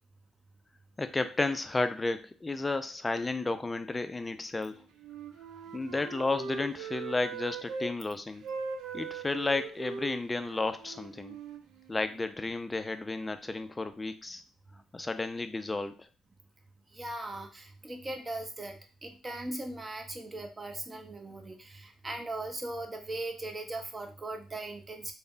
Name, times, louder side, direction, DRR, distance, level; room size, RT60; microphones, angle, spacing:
voice 1, 1.0-4.8 5.7-8.5 8.9-11.4 11.9-14.4 14.9-16.0, left 3 dB, 20° left, 10 dB, 0.4 m, -32 dB
Wind instrument woodwind instrument, 5.0-7.9 8.4-12.3, right 5 dB, 75° right, 0.4 m, -40 dB
voice 2, 16.9-25.1, right 2 dB, 25° right, 5 dB, 0.7 m, -39 dB
3.4 x 2.1 x 2.5 m, 0.34 s
supercardioid pair, 60°, 0 cm